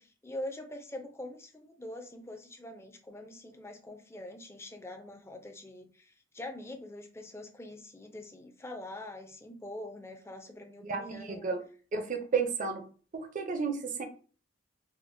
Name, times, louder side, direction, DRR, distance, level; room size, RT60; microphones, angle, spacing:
voice 1, 0.0-11.5, left 1 dB, 15° left, 5 dB, 0.4 m, -44 dB
voice 2, 10.9-11.6 11.9-12.9 13.1-14.0, right 5 dB, 40° right, 5 dB, 0.5 m, -32 dB
4.9 x 2.1 x 2.5 m, 0.40 s
head